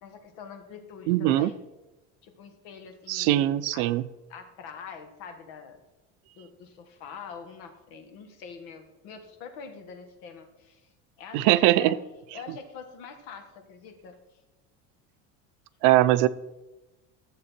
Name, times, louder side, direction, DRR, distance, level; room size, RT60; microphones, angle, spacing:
voice 1, 0.0-1.6 2.2-3.9 4.3-5.8 6.3-10.9 11.2-12.0 12.3-14.2, left 6 dB, 85° left, 6 dB, 1.6 m, -44 dB
voice 2, 1.1-1.5 3.1-4.0 11.3-11.9 15.8-16.3, right 14 dB, 75° right, 15 dB, 0.6 m, -21 dB
12.5 x 7.6 x 4.4 m, 1.1 s
cardioid pair, 155°, 30 cm